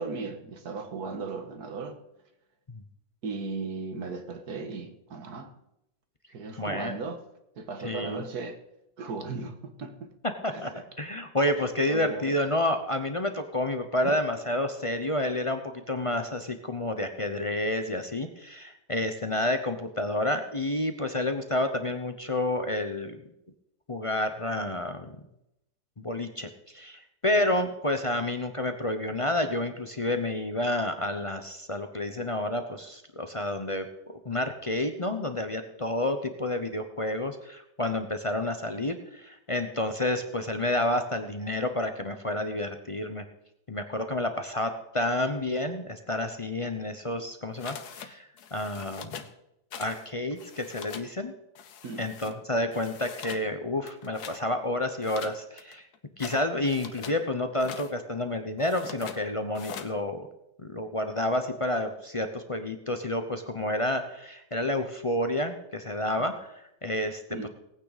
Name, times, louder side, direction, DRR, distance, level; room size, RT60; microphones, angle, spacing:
voice 1, 0.0-2.0 3.2-5.5 6.3-7.2 7.6-8.6 9.0-10.1 10.5-10.8 11.9-12.4 14.0-14.2 51.8-52.1 66.2-66.3 67.3-67.5, right 4 dB, 65° right, 1.9 m, -36 dB
voice 2, 6.6-7.0 7.8-8.2 10.4-10.7 11.0-23.2 23.9-25.2 26.0-33.8 34.2-43.2 43.7-49.2 49.8-51.3 52.0-55.9 56.2-60.3 60.6-67.5, left 1 dB, 35° left, 0.5 m, -30 dB
sound 1, 47.6-48.1 48.4-49.3 49.7-50.1 50.3-51.1 51.6-52.3 52.7-53.5 53.8-54.4 55.0-57.2 57.5-57.9 58.6-59.2 59.5-59.9, left 7 dB, 70° left, 1.4 m, -42 dB
19.0 x 9.0 x 4.1 m
omnidirectional pair, 1.8 m